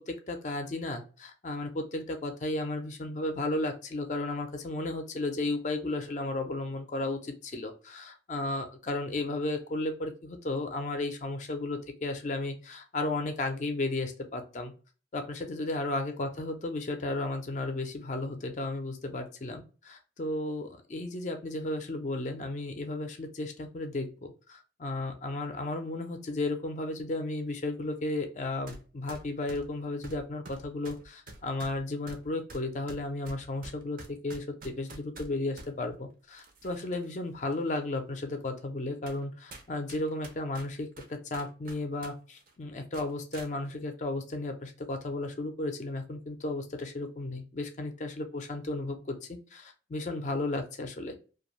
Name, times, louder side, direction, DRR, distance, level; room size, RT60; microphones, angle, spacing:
voice 1, 0.1-14.7 15.1-51.2, left 2 dB, 40° left, 5 dB, 0.4 m, -34 dB
sound 1, 28.7-28.8 29.1-35.7 36.3-37.1 37.5-37.6 38.3-38.4 39.1-39.2 39.5-42.1 42.4-42.5 42.9-43.5, right 2 dB, 50° right, 0.6 m, -47 dB
2.6 x 2.3 x 3.0 m, 0.36 s
head